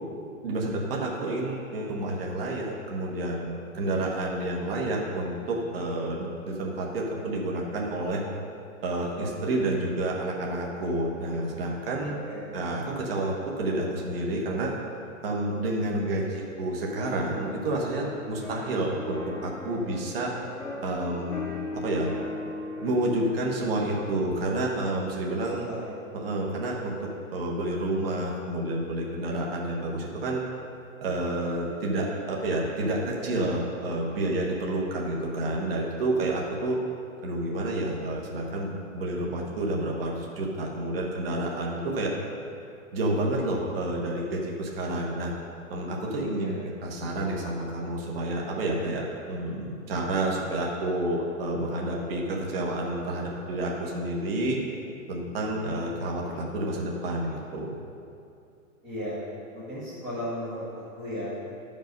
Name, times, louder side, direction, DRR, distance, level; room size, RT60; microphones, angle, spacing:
voice 1, 0.4-8.2 8.8-12.2 12.5-14.7 15.2-20.3 20.8-22.1 22.8-25.7 26.1-26.9 27.3-30.4 31.0-36.8 37.2-42.1 42.9-45.3 45.7-54.6 55.1-57.7, right 1 dB, 45° right, -2 dB, 1.4 m, -29 dB
sound 1, 16.9-24.1, left 3 dB, ahead, 1.6 m, -38 dB
voice 2, 25.6-25.9 46.3-46.6 58.8-59.2 59.5-61.4, equal, 15° right, -12 dB, 1.8 m, -35 dB
11.0 x 5.5 x 5.2 m, 2.5 s
hypercardioid pair, 175°, 41 cm